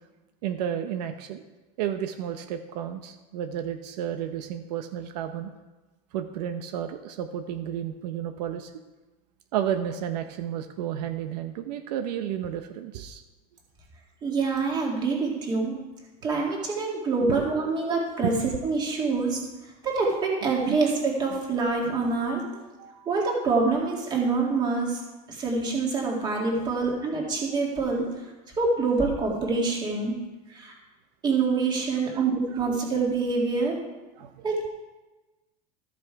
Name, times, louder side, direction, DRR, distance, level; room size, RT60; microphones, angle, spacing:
voice 1, 0.4-1.4 1.8-5.5 6.1-8.7 9.5-13.2 17.2-17.4 18.2-18.6 20.7-20.8 21.3-21.4 22.5-23.1 26.6-26.7 31.9-32.3 32.5-32.7 34.2-34.4, right 10 dB, 75° right, 7 dB, 0.8 m, -32 dB
voice 2, 14.2-15.8 16.2-18.3 18.6-19.4 19.8-22.4 23.1-25.0 25.3-28.1 28.6-30.2 30.5-30.7 31.2-33.8 34.4-34.7, right 4 dB, 20° right, -1 dB, 2.0 m, -26 dB
13.5 x 6.1 x 4.7 m, 1.2 s
supercardioid pair, 165°, 21 cm